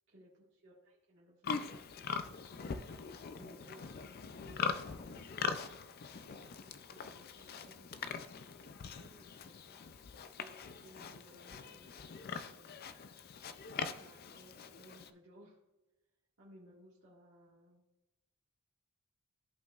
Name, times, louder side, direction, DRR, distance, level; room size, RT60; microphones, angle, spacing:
voice 1, 0.1-3.0 3.4-4.1 4.4-12.0 12.3-12.9 14.0-15.6 16.4-17.8, equal, 55° right, -7 dB, 1.5 m, -61 dB
Livestock farm animals working animals, 1.4-15.1, left 6 dB, 45° left, 0.4 m, -42 dB
13.5 x 5.2 x 2.4 m, 1.1 s
head